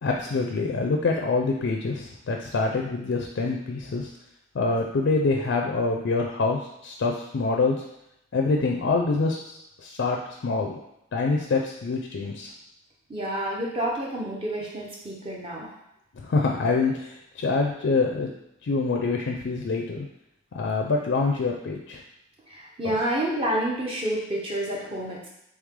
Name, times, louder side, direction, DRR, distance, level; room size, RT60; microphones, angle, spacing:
voice 1, 0.0-4.1 4.5-7.8 8.3-9.4 9.8-10.2 10.4-10.8 11.1-12.5 16.2-18.3 18.6-20.1 20.5-22.0 22.8-22.9, left 3 dB, 60° left, 1 dB, 0.4 m, -25 dB
voice 2, 13.1-15.7 22.5-25.3, right 1 dB, 25° right, -3 dB, 0.7 m, -29 dB
3.2 x 3.2 x 3.6 m, 0.82 s
head